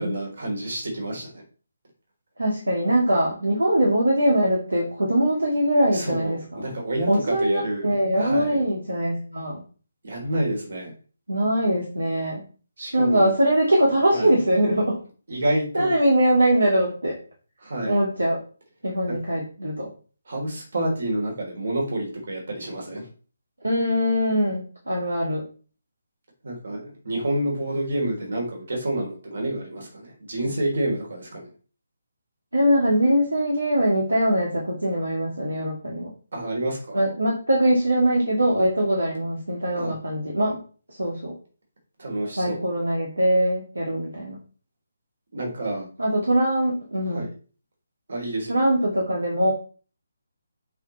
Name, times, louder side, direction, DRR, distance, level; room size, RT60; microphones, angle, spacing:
voice 1, 0.0-1.4 5.9-7.1 7.4-7.9 8.1-8.6 10.0-10.9 12.8-13.3 14.1-14.4 15.3-15.9 17.6-18.0 19.1-19.2 20.3-23.1 26.4-31.5 36.3-37.0 39.7-40.0 42.0-42.6 45.3-45.9 47.1-47.3 48.1-48.6, right 1 dB, 55° right, 0 dB, 4.0 m, -28 dB
voice 2, 2.4-6.7 7.1-9.6 11.3-12.4 12.9-15.0 15.7-17.2 17.9-18.4 18.8-19.9 23.6-25.4 32.5-36.1 36.9-40.6 41.0-41.3 42.4-44.4 46.0-47.2 48.5-49.5, right 1 dB, 75° right, -2 dB, 2.3 m, -22 dB
7.7 x 5.0 x 4.2 m, 0.39 s
figure-of-eight pair, 145°, 0 cm